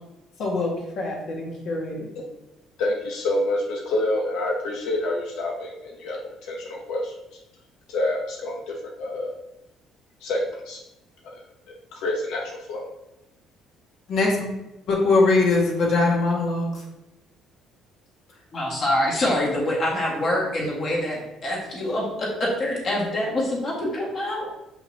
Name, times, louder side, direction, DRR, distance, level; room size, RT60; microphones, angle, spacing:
voice 1, 0.4-2.1 14.1-14.5 14.9-16.8, left 3 dB, 55° left, -2 dB, 1.9 m, -22 dB
voice 2, 2.8-7.1 7.9-9.3 10.2-10.8 11.2-11.4 11.7-12.8, left 1 dB, 85° left, -1 dB, 0.9 m, -28 dB
voice 3, 18.5-21.2 21.4-24.5, left 1 dB, 35° left, -4 dB, 1.9 m, -25 dB
7.3 x 5.6 x 2.9 m, 0.94 s
cardioid pair, 175°, 0 cm